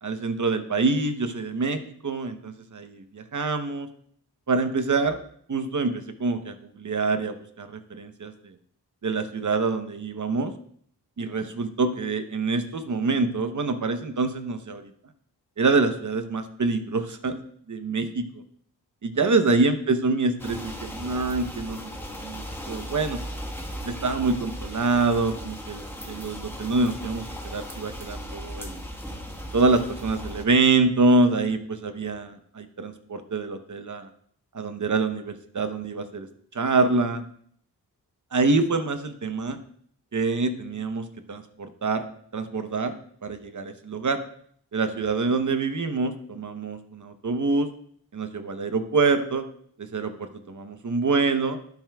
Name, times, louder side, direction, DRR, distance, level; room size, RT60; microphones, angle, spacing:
voice 1, 0.0-3.9 4.5-5.2 5.5-8.3 9.0-10.5 11.2-14.9 15.6-17.4 17.7-18.2 19.0-23.2 23.8-28.8 29.5-34.1 34.5-36.3 36.5-37.2 38.3-39.6 40.1-42.0 42.3-42.9 43.2-44.2 44.7-47.7 48.1-49.4 49.8-51.6, right 3 dB, 50° right, 8 dB, 0.8 m, -26 dB
sound 1, 20.4-30.4, equal, 5° left, 1.3 m, -37 dB
11.5 x 9.4 x 2.3 m, 0.63 s
wide cardioid pair, 80°, 39 cm